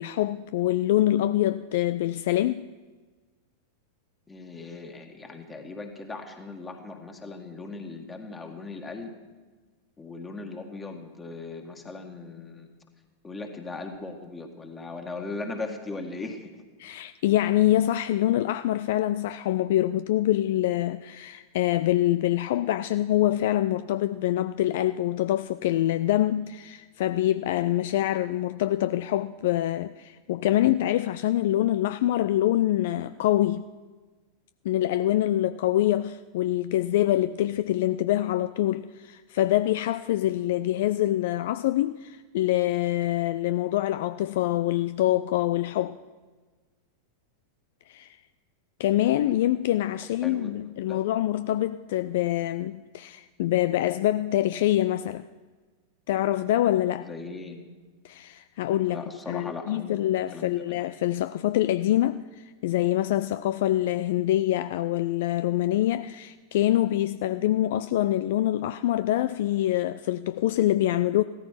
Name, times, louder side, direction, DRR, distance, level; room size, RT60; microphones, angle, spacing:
voice 1, 0.0-2.7 16.8-33.6 34.6-46.0 47.9-48.2 48.8-55.3 56.1-57.1 58.0-71.2, left 13 dB, 55° left, 0.4 m, -25 dB
voice 2, 4.3-9.2 10.0-12.7 13.2-16.5 50.2-50.5 50.9-51.0 57.0-57.6 58.9-59.9 60.3-60.8, left 3 dB, 15° left, 1.9 m, -38 dB
16.0 x 13.5 x 5.8 m
figure-of-eight pair, 90°, 0 cm